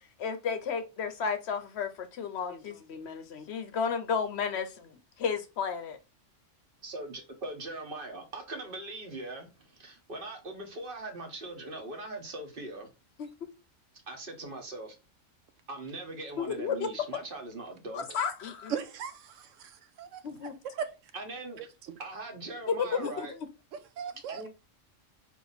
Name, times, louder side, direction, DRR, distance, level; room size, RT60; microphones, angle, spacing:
voice 1, 0.2-6.0 13.2-13.3 16.4-16.9 17.9-18.8 20.2-20.5 22.7-23.5, left 6 dB, 65° left, 0.8 m, -33 dB
voice 2, 6.8-12.9 14.1-14.9 15.7-18.2 21.1-21.6 22.0-23.3 24.3-24.5, right 2 dB, 45° right, 1.2 m, -41 dB
voice 3, 18.7-19.7 20.0-20.2 20.7-20.9 24.0-24.5, right 7 dB, 80° right, 1.0 m, -37 dB
4.4 x 2.8 x 4.0 m
omnidirectional pair, 1.3 m